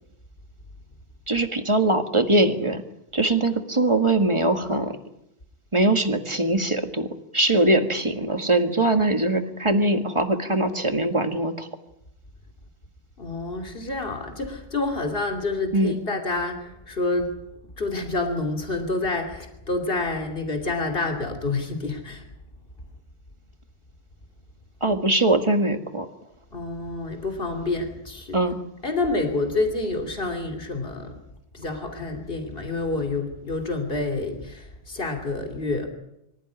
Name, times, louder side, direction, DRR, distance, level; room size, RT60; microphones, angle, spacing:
voice 1, 1.3-2.8 3.1-5.0 5.7-11.7 15.7-16.0 24.8-26.1 28.3-28.6, right 2 dB, 30° right, 6 dB, 1.9 m, -22 dB
voice 2, 13.2-17.3 17.8-22.3 26.5-28.5 28.8-31.2 31.5-35.9, left 2 dB, 65° left, 4 dB, 3.2 m, -28 dB
24.5 x 15.0 x 9.8 m, 0.84 s
omnidirectional pair, 1.0 m